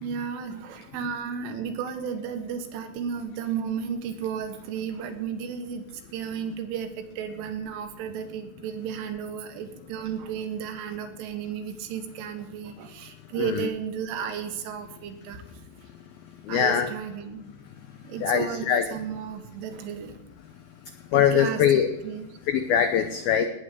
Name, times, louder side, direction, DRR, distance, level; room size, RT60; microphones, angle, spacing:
voice 1, 0.0-15.4 16.5-17.5 18.0-20.2 21.1-21.6 22.0-22.4, right 7 dB, 80° right, 6 dB, 3.9 m, -33 dB
voice 2, 13.4-13.7 16.4-16.9 18.2-18.8 21.1-21.9 22.5-23.5, left 9 dB, 85° left, 7 dB, 2.1 m, -22 dB
18.0 x 9.2 x 6.7 m, 0.93 s
omnidirectional pair, 5.5 m